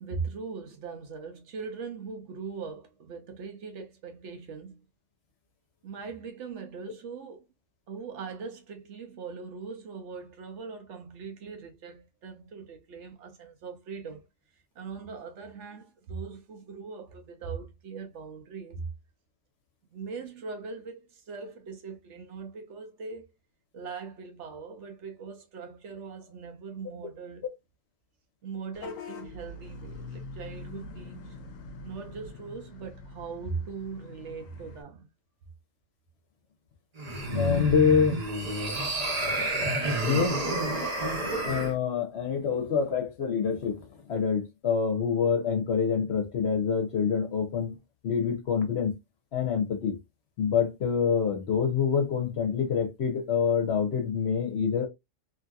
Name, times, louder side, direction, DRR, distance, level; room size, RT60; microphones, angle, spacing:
voice 1, 0.0-4.8 5.8-7.4 7.9-14.2 14.8-18.9 19.9-23.3 23.7-27.5 28.4-31.4 31.8-35.1, right 5 dB, 70° right, 0.9 m, -40 dB
Vehicle horn car horn honking / Bus, 28.7-34.8, left 3 dB, 85° left, 1.0 m, -44 dB
sound 1, 37.0-41.7, right 1 dB, 40° right, 0.7 m, -29 dB
voice 2, 37.3-38.2 40.0-40.4 41.4-47.8 48.0-49.0 49.3-50.0 50.4-54.9, left 6 dB, 60° left, 0.9 m, -26 dB
2.8 x 2.7 x 2.3 m
omnidirectional pair, 1.3 m